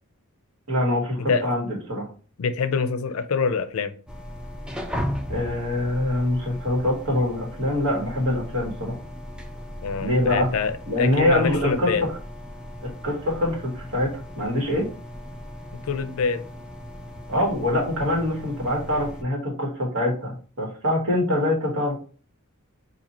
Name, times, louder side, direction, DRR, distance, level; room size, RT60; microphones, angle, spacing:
voice 1, 0.7-2.1 5.3-9.0 10.0-10.5 10.9-12.1 12.8-14.9 17.3-22.0, left 1 dB, 85° right, -1 dB, 1.6 m, -24 dB
voice 2, 2.4-3.9 9.8-12.1 15.8-16.4, left 5 dB, 80° left, 11 dB, 0.5 m, -25 dB
sound 1, 4.1-19.2, equal, 5° right, 0.3 m, -37 dB
4.1 x 2.7 x 2.8 m, 0.39 s
head